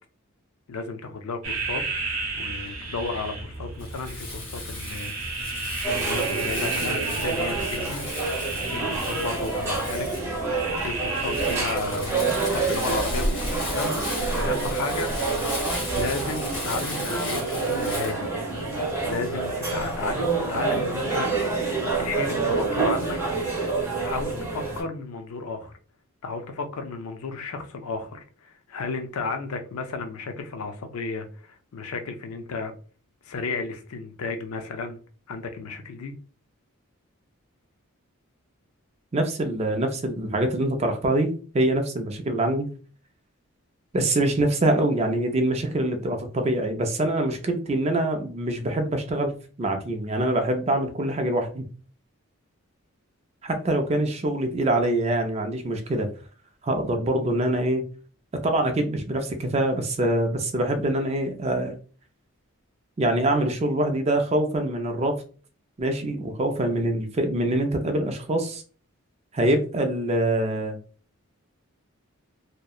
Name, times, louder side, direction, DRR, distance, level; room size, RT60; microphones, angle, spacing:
voice 1, 0.7-1.8 2.4-5.6 5.9-8.1 8.7-10.3 10.8-15.1 16.0-21.4 22.0-23.2 23.8-25.7 26.2-32.7 33.2-35.0 35.3-36.1, left 4 dB, 80° left, 0.4 m, -33 dB
sound 1, 1.4-11.8, right 3 dB, 75° right, 0.7 m, -32 dB
Crumpling crinkling, 3.8-18.1, left 1 dB, 60° left, 1.1 m, -35 dB
sound 2, 5.8-24.8, right 3 dB, 10° right, 0.8 m, -28 dB
voice 2, 39.1-42.7 43.9-49.3 49.6-51.6 53.4-56.1 56.6-57.9 58.4-61.7 63.0-65.2 65.8-68.6 69.3-70.8, right 1 dB, 30° right, 0.4 m, -24 dB
2.7 x 2.1 x 2.3 m
head